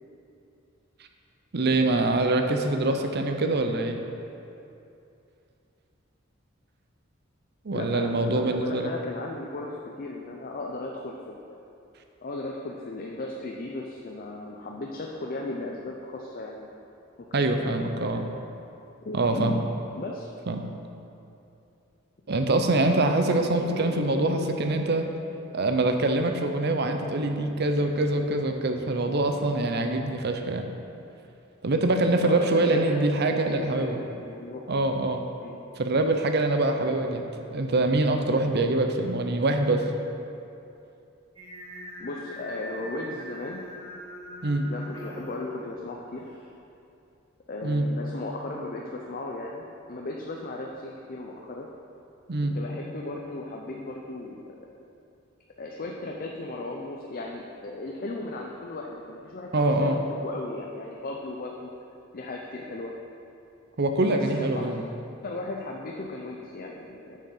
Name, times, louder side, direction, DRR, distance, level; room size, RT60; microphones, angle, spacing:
voice 1, 1.5-4.0 7.6-8.9 17.3-18.2 19.1-19.6 20.5-20.6 22.3-25.1 25.5-30.7 31.6-34.0 34.7-35.2 35.8-39.8 44.4-44.7 47.6-47.9 52.3-52.6 59.5-60.0 63.8-64.8, right 2 dB, 55° right, 5 dB, 0.7 m, -24 dB
voice 2, 7.7-11.6 12.2-16.7 17.2-18.2 19.0-19.6 19.9-20.3 23.3-24.7 28.7-28.8 32.2-34.6 35.4-35.6 36.8-37.0 42.0-43.6 44.6-46.3 47.5-51.7 52.5-54.7 55.6-61.7 62.1-62.9 64.1-64.7 65.2-67.2, left 2 dB, 45° left, 0 dB, 0.6 m, -36 dB
Singing, 41.4-46.5, equal, 30° right, 2.2 m, -43 dB
7.1 x 6.5 x 5.5 m, 2.7 s
head